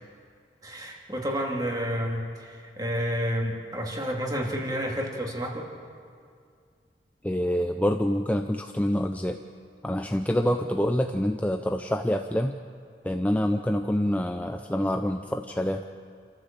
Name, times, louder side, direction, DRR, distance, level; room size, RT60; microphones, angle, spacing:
voice 1, 0.6-5.7, equal, 20° right, 0 dB, 2.6 m, -30 dB
voice 2, 7.2-9.4 9.8-12.6 13.0-15.8, equal, 10° left, 5 dB, 0.5 m, -26 dB
28.0 x 13.5 x 7.4 m, 2.2 s
head